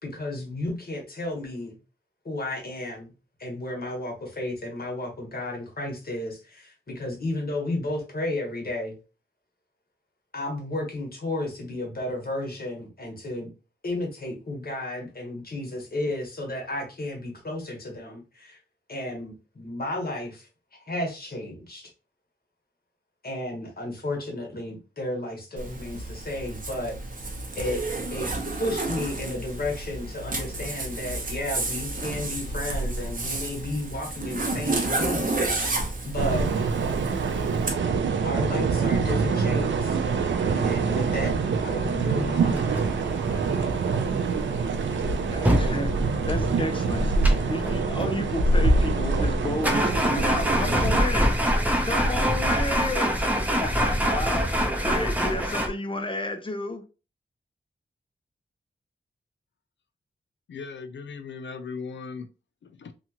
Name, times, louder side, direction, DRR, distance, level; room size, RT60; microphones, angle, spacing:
voice 1, 0.0-1.8 2.2-3.1 3.4-9.0 10.3-13.5 13.8-18.6 18.9-21.9 23.2-27.0 27.5-27.8 28.1-28.3 28.6-36.5 38.2-40.0 40.5-41.4 41.6-42.6, left 1 dB, 55° left, 1.3 m, -33 dB
Zipper (clothing), 25.6-37.7, right 2 dB, 45° right, 0.8 m, -31 dB
sound 1, 36.2-51.0, right 4 dB, 90° right, 0.4 m, -25 dB
sound 2, 40.7-55.7, equal, 10° right, 0.7 m, -27 dB
voice 2, 45.3-45.9 46.2-47.1 47.5-51.4 51.8-56.8, left 2 dB, 25° left, 0.6 m, -32 dB
voice 3, 60.5-62.3 62.6-62.9, left 5 dB, 75° left, 0.5 m, -38 dB
2.8 x 2.4 x 2.8 m
cardioid pair, 55°, 19 cm